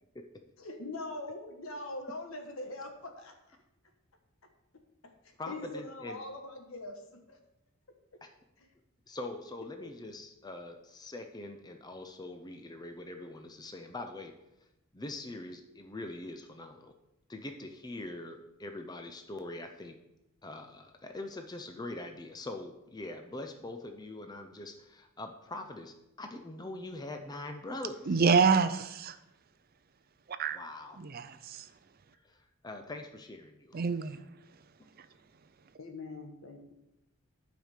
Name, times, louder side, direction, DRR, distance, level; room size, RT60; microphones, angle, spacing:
voice 1, 0.6-3.6 5.0-5.1 5.5-7.4 8.6-8.7 9.8-9.9 35.8-36.7, left 2 dB, 70° left, 5 dB, 1.4 m, -42 dB
voice 2, 5.4-6.2 8.2-8.3 9.1-14.3 14.9-16.9 17.3-19.9 20.4-28.2 30.5-31.0 32.2-32.4 32.6-33.8 34.8-34.9, left 2 dB, 20° left, 5 dB, 0.5 m, -43 dB
voice 3, 28.1-29.1 30.3-30.6 31.0-31.7 33.7-34.2, right 5 dB, 45° right, 12 dB, 0.5 m, -27 dB
9.2 x 5.2 x 6.5 m, 0.89 s
head